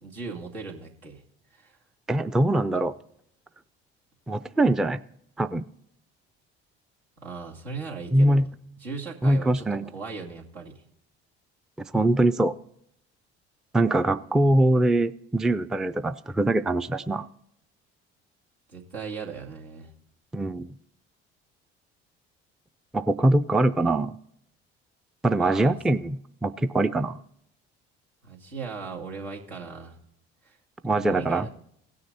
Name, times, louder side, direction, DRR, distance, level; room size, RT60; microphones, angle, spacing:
voice 1, 0.0-1.2 1.5-1.8 7.2-8.4 8.8-9.7 9.9-10.8 18.7-19.9 25.3-25.8 28.2-30.0 30.4-30.6 30.9-31.6, right 4 dB, 90° right, -4 dB, 2.4 m, -38 dB
voice 2, 2.1-2.9 4.3-5.0 5.4-5.7 8.1-8.5 9.2-9.9 11.9-12.5 13.7-17.3 20.3-20.7 22.9-24.1 25.2-27.2 30.8-31.5, right 1 dB, ahead, 12 dB, 0.4 m, -23 dB
17.5 x 6.5 x 4.2 m, 0.73 s
hypercardioid pair, 65°, 32 cm